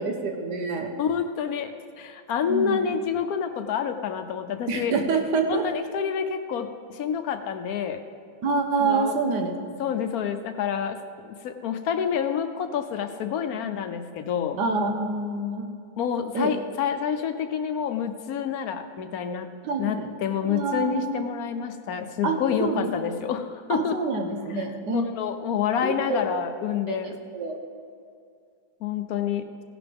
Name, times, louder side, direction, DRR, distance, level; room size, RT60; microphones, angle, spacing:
voice 1, 0.0-0.9 2.5-2.8 4.7-5.7 8.4-9.5 14.6-15.7 16.3-16.5 19.6-20.1 20.4-21.3 22.2-22.9 23.7-25.1 25.8-26.2 26.9-27.6, right 3 dB, 90° right, 4 dB, 1.7 m, -27 dB
voice 2, 1.0-4.9 5.5-8.0 8.8-9.2 9.8-11.0 11.4-14.6 16.0-19.5 19.8-24.0 24.5-24.7 24.9-27.2 28.8-29.5, left 8 dB, 70° left, 8 dB, 1.1 m, -28 dB
17.0 x 11.0 x 3.5 m, 2.3 s
omnidirectional pair, 1.7 m